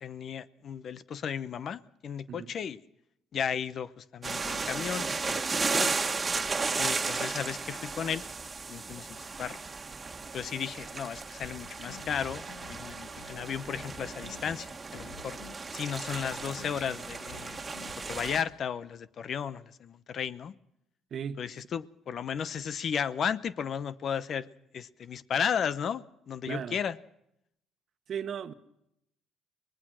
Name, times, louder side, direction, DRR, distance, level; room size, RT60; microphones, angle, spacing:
voice 1, 0.0-2.8 3.3-5.9 6.8-8.2 8.7-9.1 9.4-9.6 10.3-14.7 14.9-15.4 15.7-17.6 18.1-20.5 21.4-24.5 24.7-27.0, left 7 dB, 55° left, 0.8 m, -34 dB
sound 1, 4.2-18.4, right 4 dB, 30° right, 1.6 m, -35 dB
sound 2, 11.4-15.8 16.1-18.5, left 5 dB, 90° left, 2.1 m, -50 dB
voice 2, 21.1-21.4 26.5-26.8 28.1-28.5, right 8 dB, 55° right, 1.2 m, -36 dB
24.0 x 19.5 x 6.2 m
supercardioid pair, 70°, 0 cm